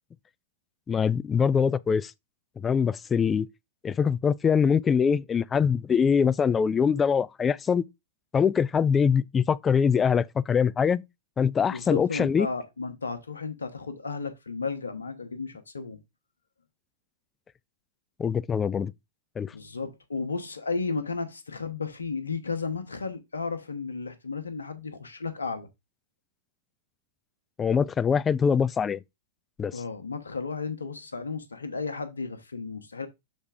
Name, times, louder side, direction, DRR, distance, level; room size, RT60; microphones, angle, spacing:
voice 1, 0.9-2.1 2.6-3.5 3.8-7.8 8.3-11.0 11.4-12.5 18.2-18.9 19.4-19.5 27.6-29.0 29.6-29.7, left 6 dB, 20° left, 0.4 m, -23 dB
voice 2, 11.7-16.0 19.5-25.7 29.7-33.1, left 4 dB, 90° left, 1.0 m, -33 dB
6.5 x 3.4 x 4.9 m
hypercardioid pair, 105°, 0 cm